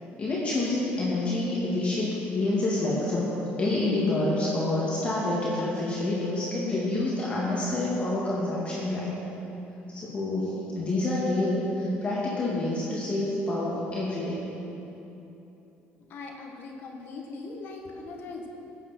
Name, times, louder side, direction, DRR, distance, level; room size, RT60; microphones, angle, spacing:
voice 1, 0.2-3.3 3.6-9.1 9.9-14.4, left 2 dB, 30° left, -7 dB, 2.1 m, -27 dB
voice 2, 16.1-18.5, left 3 dB, 55° left, 1 dB, 1.4 m, -40 dB
13.5 x 8.5 x 4.4 m, 3.0 s
cardioid pair, 120°, 4 cm